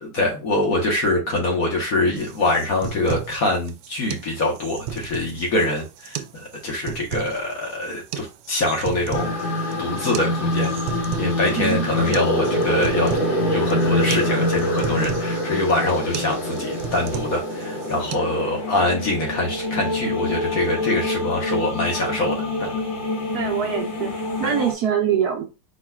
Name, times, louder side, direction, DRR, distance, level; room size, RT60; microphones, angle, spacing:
voice 1, 0.0-9.3 9.8-13.1 13.5-22.7 24.4-24.5, left 2 dB, 50° left, 0 dB, 1.6 m, -24 dB
sound 1, 2.2-18.2, right 9 dB, 85° right, 1.3 m, -34 dB
sound 2, 9.1-24.7, left 1 dB, 75° left, 2.2 m, -25 dB
voice 2, 11.6-12.1 23.3-25.4, right 8 dB, 60° right, 1 dB, 1.3 m, -24 dB
4.6 x 4.0 x 2.3 m, 0.28 s
omnidirectional pair, 2.0 m